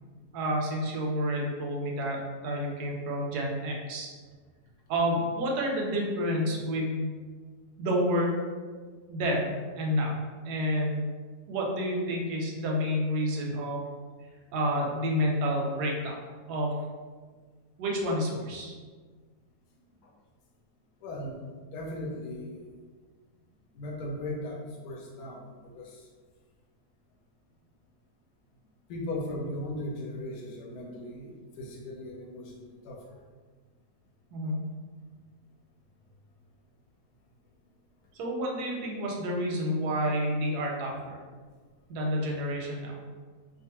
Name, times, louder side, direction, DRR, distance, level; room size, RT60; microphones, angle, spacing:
voice 1, 0.3-4.1 4.9-7.2 7.8-8.3 9.1-10.2 10.4-11.0 11.5-13.8 14.5-16.2 16.5-16.8 17.8-18.8 34.3-34.6 38.1-41.2 41.9-43.0, equal, 85° right, -1 dB, 1.2 m, -29 dB
voice 2, 21.0-22.7 23.7-26.1 28.9-33.2, left 1 dB, 85° left, -1 dB, 1.1 m, -38 dB
2.8 x 2.3 x 2.8 m, 1.5 s
omnidirectional pair, 1.7 m